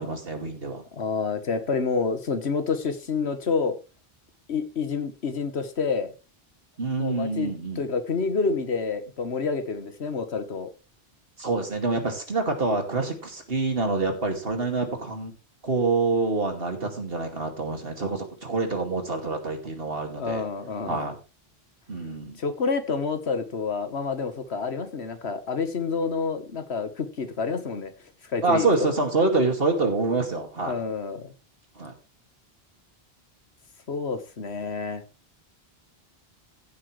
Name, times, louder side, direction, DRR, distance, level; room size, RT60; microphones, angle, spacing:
voice 1, 0.0-0.8 6.8-7.8 11.4-15.3 15.6-20.4 20.8-21.2 21.9-22.4 28.4-30.8 31.8-31.9, right 3 dB, 65° right, 2.6 m, -26 dB
voice 2, 0.9-3.8 4.5-6.1 7.0-10.7 20.2-21.1 22.4-27.9 28.3-28.7 30.6-31.3 33.9-35.0, left 5 dB, 85° left, 1.6 m, -28 dB
15.5 x 7.9 x 3.2 m
omnidirectional pair, 1.1 m